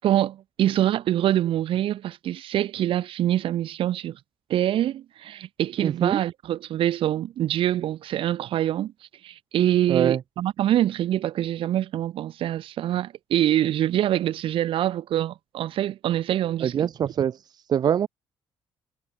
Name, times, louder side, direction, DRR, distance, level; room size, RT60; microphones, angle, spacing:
voice 1, 0.0-4.2 4.5-8.9 9.2-16.7, right 12 dB, 65° right, 7.0 m, -25 dB
voice 2, 5.8-6.2 9.9-10.2 16.6-17.4 17.7-18.1, right 9 dB, 45° right, 2.0 m, -23 dB
cardioid pair, 170°, 10 cm